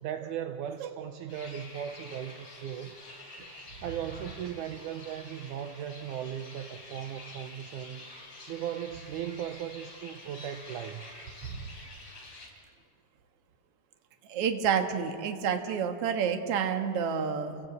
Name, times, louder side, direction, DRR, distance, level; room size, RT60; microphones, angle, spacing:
voice 1, 0.0-3.0 3.8-8.0 8.5-11.1, right 9 dB, 75° right, 8 dB, 2.1 m, -37 dB
sound 1, 1.3-12.5, left 2 dB, 40° left, 4.5 m, -48 dB
voice 2, 14.3-17.6, right 7 dB, 55° right, 6 dB, 2.1 m, -29 dB
29.5 x 17.5 x 8.3 m, 2.3 s
omnidirectional pair, 3.9 m